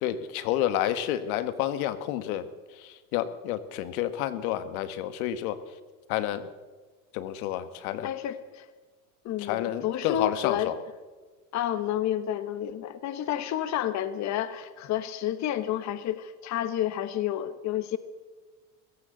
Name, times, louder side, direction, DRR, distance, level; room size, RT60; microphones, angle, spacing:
voice 1, 0.0-2.4 2.8-5.6 6.1-6.5 7.1-8.1 9.4-10.8, left 12 dB, 70° left, 12 dB, 1.5 m, -30 dB
voice 2, 8.0-8.7 9.2-10.7 11.5-18.0, left 11 dB, 40° left, 12 dB, 1.1 m, -30 dB
20.5 x 17.0 x 3.9 m, 1.3 s
supercardioid pair, 105°, 45 cm